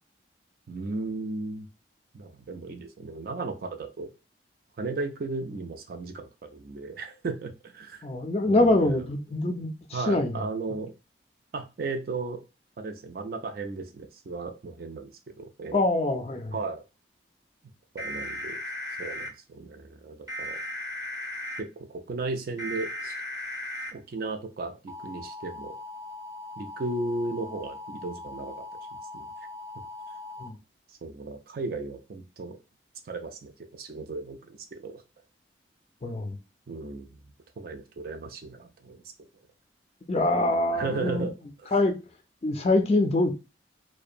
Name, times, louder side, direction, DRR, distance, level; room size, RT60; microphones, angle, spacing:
voice 1, 0.7-1.7 2.1-4.1 4.8-8.0 8.5-9.1 9.9-10.9 11.5-12.4 12.8-15.8 16.5-16.8 17.9-18.6 19.0-20.6 21.6-23.1 23.9-25.7 26.6-28.5 29.1-29.3 31.0-32.6 33.1-34.4 34.7-35.0 36.7-37.2 37.6-39.0 40.7-41.3, right 3 dB, 50° right, 0.4 m, -35 dB
voice 2, 8.0-10.3 15.7-16.5 30.4-30.6 36.0-36.4 40.1-41.3 41.7-41.9 42.4-43.3, left 2 dB, 35° left, 0.4 m, -24 dB
sound 1, 18.0-19.3 20.3-21.6 22.6-23.9 24.9-30.5, left 1 dB, 20° right, 0.7 m, -38 dB
2.7 x 2.1 x 2.4 m
head